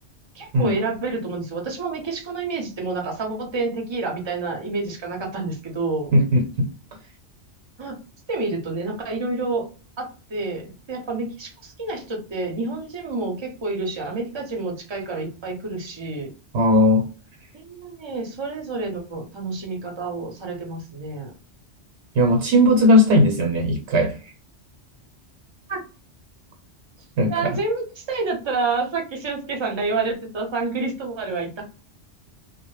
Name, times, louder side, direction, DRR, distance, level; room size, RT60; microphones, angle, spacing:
voice 1, 0.3-6.1 7.8-8.0 8.3-9.7 10.0-16.3 17.5-21.3 25.7-25.8 27.3-31.6, right 3 dB, 30° right, 0.6 m, -28 dB
voice 2, 6.1-6.7 16.5-17.1 22.1-24.2 27.2-27.6, left 1 dB, 80° right, 0.9 m, -18 dB
2.1 x 2.1 x 3.0 m
omnidirectional pair, 1.1 m